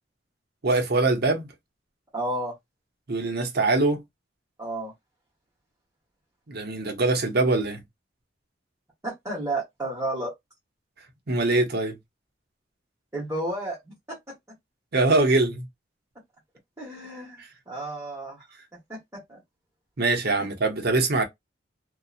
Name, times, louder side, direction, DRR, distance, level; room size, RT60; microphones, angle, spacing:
voice 1, 0.6-1.5 3.1-4.0 6.5-7.8 11.3-12.0 14.9-15.7 17.4-17.5 20.0-21.2, right 2 dB, 60° right, 0.8 m, -23 dB
voice 2, 2.1-2.5 4.6-4.9 9.0-10.3 13.1-14.2 16.8-18.5 18.9-19.4, right 1 dB, 15° right, 1.1 m, -32 dB
2.7 x 2.3 x 2.4 m
head